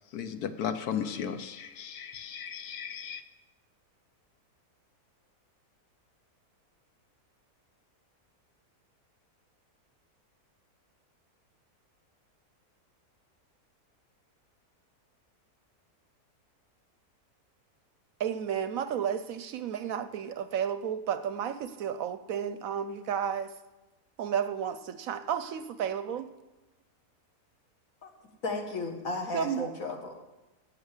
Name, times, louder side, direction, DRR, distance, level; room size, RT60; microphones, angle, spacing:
voice 1, 0.1-3.2, left 8 dB, 75° left, 10 dB, 1.2 m, -35 dB
voice 2, 18.2-23.5 24.2-26.3 29.3-29.7, right 8 dB, 70° right, 12 dB, 0.9 m, -32 dB
voice 3, 28.4-30.2, left 3 dB, 60° left, 3 dB, 1.9 m, -34 dB
12.0 x 6.7 x 8.1 m, 1.1 s
omnidirectional pair, 1.7 m